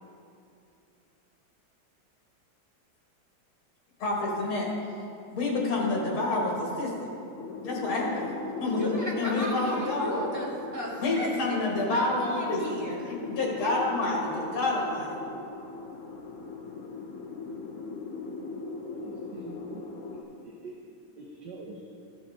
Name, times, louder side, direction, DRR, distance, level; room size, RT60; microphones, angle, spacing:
voice 1, 4.0-4.7 5.3-7.1 7.6-8.3 8.6-10.2 11.0-12.6 13.0-15.2, left 2 dB, 90° left, -2 dB, 2.4 m, -28 dB
sound 1, 7.4-20.2, left 3 dB, 60° left, 0.8 m, -39 dB
voice 2, 8.7-11.6 11.9-13.0, equal, 10° right, -7 dB, 1.9 m, -34 dB
voice 3, 18.8-20.7 21.2-21.8, right 3 dB, 65° right, -1 dB, 1.3 m, -45 dB
14.5 x 5.7 x 3.5 m, 2.7 s
omnidirectional pair, 2.2 m